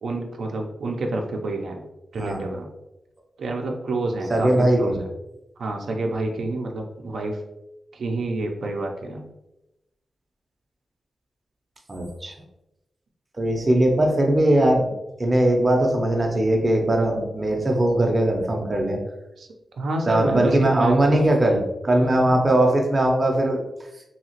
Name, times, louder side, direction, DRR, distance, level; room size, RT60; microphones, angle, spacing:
voice 1, 0.0-1.8 2.1-2.7 3.4-5.1 5.6-7.4 7.9-9.3 19.4-19.5 19.8-21.3, right 2 dB, 85° right, 2 dB, 0.4 m, -28 dB
voice 2, 4.3-5.0 11.9-12.3 13.4-14.9 15.2-19.0 20.1-23.6, right 1 dB, 25° right, 2 dB, 0.5 m, -20 dB
2.8 x 2.8 x 2.8 m, 0.91 s
wide cardioid pair, 140°, 0 cm